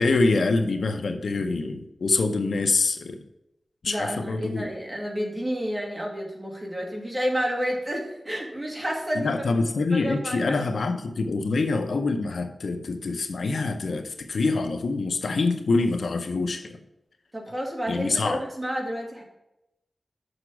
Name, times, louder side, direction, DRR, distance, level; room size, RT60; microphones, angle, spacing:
voice 1, 0.0-3.2 3.8-4.7 9.2-16.8 17.9-18.4, left 3 dB, 85° left, 7 dB, 0.6 m, -25 dB
voice 2, 3.9-9.4 9.9-10.6 17.3-19.2, equal, 20° right, -1 dB, 2.3 m, -30 dB
6.5 x 6.0 x 5.9 m, 0.87 s
wide cardioid pair, 70°, 0 cm